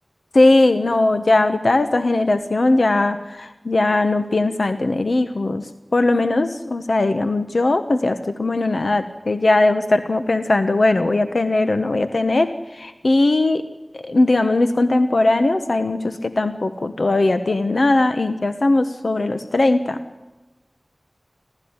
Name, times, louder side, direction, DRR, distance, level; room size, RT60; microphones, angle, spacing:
voice 1, 0.3-5.6 5.9-12.5 12.8-13.6 13.9-20.0, left 2 dB, 80° left, 9 dB, 1.1 m, -19 dB
29.0 x 14.0 x 9.7 m, 1.1 s
wide cardioid pair, 45°, 0 cm